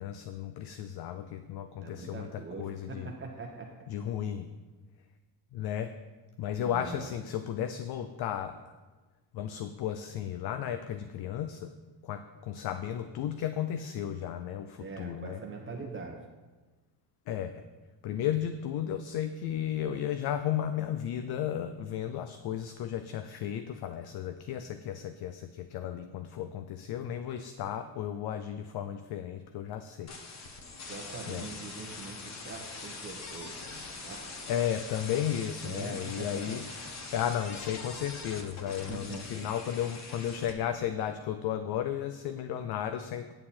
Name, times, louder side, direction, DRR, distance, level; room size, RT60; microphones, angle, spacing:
voice 1, 0.0-3.1 3.9-4.5 5.5-5.9 6.4-8.6 9.3-11.7 12.0-15.4 17.3-17.6 18.0-30.1 31.3-31.5 34.5-36.6 37.1-43.3, left 10 dB, 55° left, 9 dB, 0.6 m, -34 dB
voice 2, 1.8-3.7 6.6-7.1 14.8-16.2 30.9-33.5 34.0-34.3 35.6-36.5 38.7-39.5, right 4 dB, 25° right, 1 dB, 1.2 m, -42 dB
sound 1, 30.1-40.5, left 3 dB, 35° left, 1.3 m, -43 dB
8.9 x 7.6 x 4.3 m, 1.3 s
cardioid pair, 105°, 45 cm